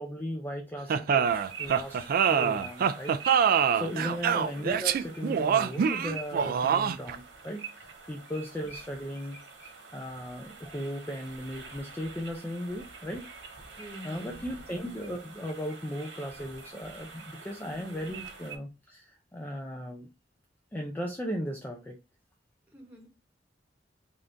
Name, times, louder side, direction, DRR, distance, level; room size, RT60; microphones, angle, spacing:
voice 1, 0.0-3.2 3.4-9.4 9.6-13.3 14.0-20.1 20.7-22.0, equal, 10° left, 2 dB, 0.4 m, -37 dB
sound 1, 0.9-7.2, right 7 dB, 55° right, 0.3 m, -25 dB
sound 2, 1.2-18.6, right 5 dB, 85° right, 1.4 m, -46 dB
voice 2, 3.7-4.2 13.8-14.5 17.6-18.1 22.7-23.1, equal, 10° right, -1 dB, 1.1 m, -47 dB
3.7 x 2.6 x 3.3 m, 0.28 s
head